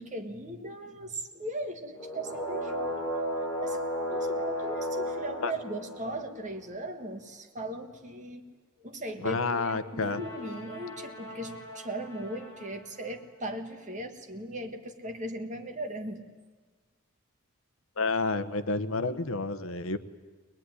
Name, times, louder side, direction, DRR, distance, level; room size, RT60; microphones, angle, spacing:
voice 1, 0.0-3.0 3.6-8.4 8.8-16.2, right 1 dB, 35° right, 4 dB, 1.9 m, -38 dB
sound 1, 1.9-6.6 9.9-12.8, equal, 15° left, 4.2 m, -35 dB
voice 2, 9.2-10.2 18.0-20.0, left 3 dB, 65° left, 11 dB, 1.0 m, -29 dB
22.5 x 21.5 x 9.8 m, 1.4 s
head